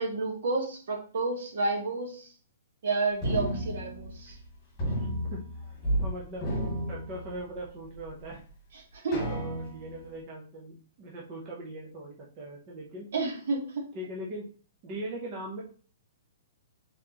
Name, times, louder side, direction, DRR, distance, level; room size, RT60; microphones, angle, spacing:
voice 1, 0.0-2.3 2.8-4.4 8.7-9.2 13.1-13.9, right 3 dB, 50° right, 2 dB, 1.2 m, -30 dB
sound 1, 3.2-4.5 4.8-6.1 6.3-7.7 8.2-8.3 9.1-10.0, right 1 dB, 15° left, 2.1 m, -32 dB
voice 2, 5.0-5.5 6.0-6.5 6.9-8.4 9.3-13.1 13.9-14.4 14.8-15.6, right 1 dB, 20° right, -3 dB, 0.6 m, -40 dB
4.2 x 3.7 x 2.8 m, 0.41 s
hypercardioid pair, 180°, 0 cm